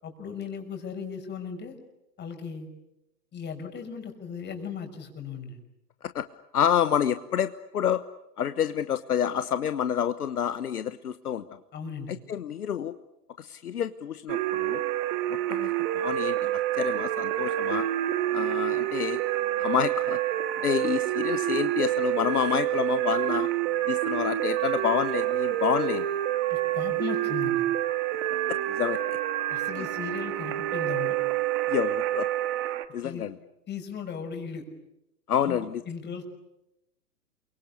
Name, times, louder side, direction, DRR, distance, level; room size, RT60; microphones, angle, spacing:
voice 1, 0.0-1.8 2.2-2.7 3.3-5.6 11.7-12.1 26.5-27.6 29.5-31.2 33.0-33.3 33.7-34.6 35.4-36.2, left 6 dB, 20° left, 4 dB, 5.9 m, -37 dB
voice 2, 6.5-8.0 8.4-11.4 12.1-12.9 13.4-14.8 15.5-17.9 18.3-19.2 19.6-20.2 20.6-23.5 23.9-26.0 28.5-29.2 29.8-29.9 31.7-32.3 32.9-33.3 35.3-35.8, left 9 dB, 65° left, 12 dB, 1.3 m, -28 dB
sound 1, 14.3-32.9, right 14 dB, 35° right, 2.0 m, -28 dB
29.0 x 24.0 x 8.5 m, 0.87 s
figure-of-eight pair, 110°, 49 cm